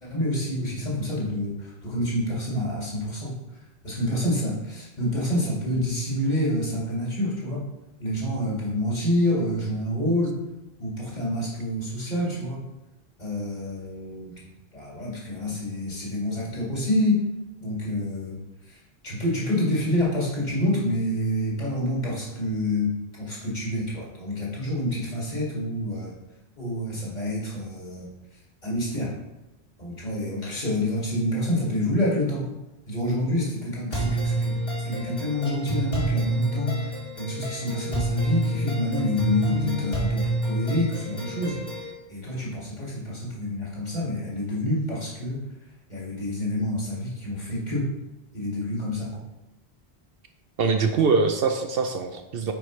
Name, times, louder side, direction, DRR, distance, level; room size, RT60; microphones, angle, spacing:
voice 1, 0.0-3.4 3.8-7.7 8.0-10.4 10.8-12.7 13.2-14.4 14.7-17.2 17.6-18.4 18.7-18.8 19.0-22.9 23.2-26.1 26.6-28.1 28.6-29.1 29.8-32.5 32.9-45.4 45.9-47.9 48.3-49.2, left 1 dB, 45° left, -5 dB, 2.3 m, -27 dB
sound 1, 33.9-41.9, right 2 dB, 65° left, 2.2 m, -28 dB
voice 2, 50.6-52.5, right 4 dB, 65° right, 5 dB, 0.8 m, -23 dB
9.1 x 4.8 x 3.1 m, 0.97 s
omnidirectional pair, 1.1 m